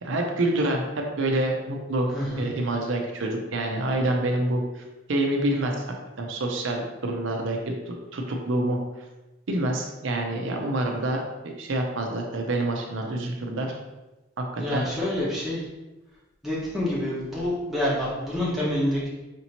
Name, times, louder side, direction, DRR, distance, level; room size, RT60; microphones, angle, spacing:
voice 1, 0.0-2.1 2.4-4.8 5.1-5.8 6.2-8.8 9.5-13.7 14.4-14.9, right 1 dB, 75° right, 1 dB, 0.6 m, -27 dB
voice 2, 2.1-2.5 14.6-15.6 16.4-19.1, left 1 dB, ahead, -7 dB, 1.0 m, -27 dB
5.1 x 2.8 x 2.9 m, 1.1 s
head